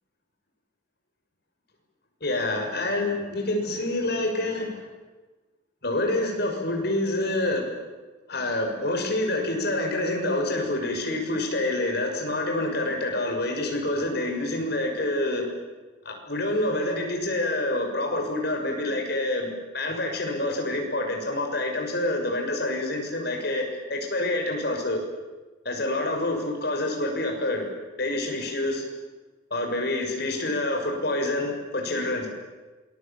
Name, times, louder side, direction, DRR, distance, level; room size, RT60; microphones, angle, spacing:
voice 1, 2.2-4.8 5.8-7.7 8.3-15.5 16.0-23.6 23.9-25.0 25.6-27.7 28.0-28.8 29.5-32.3, left 1 dB, 60° left, 2 dB, 6.4 m, -27 dB
27.5 x 21.0 x 8.7 m, 1.2 s
head